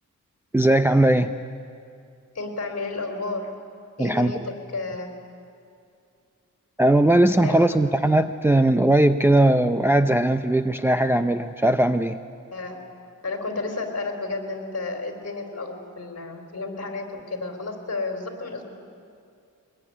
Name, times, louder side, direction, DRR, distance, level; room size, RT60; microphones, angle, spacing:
voice 1, 0.5-1.4 4.0-4.3 6.8-12.2, right 1 dB, 5° right, 7 dB, 0.6 m, -19 dB
voice 2, 2.3-3.5 4.0-5.1 7.4-7.8 12.5-12.8 13.2-18.6, left 3 dB, 50° left, 4 dB, 3.8 m, -32 dB
22.5 x 21.0 x 9.9 m, 2.4 s
wide cardioid pair, 130°, 32 cm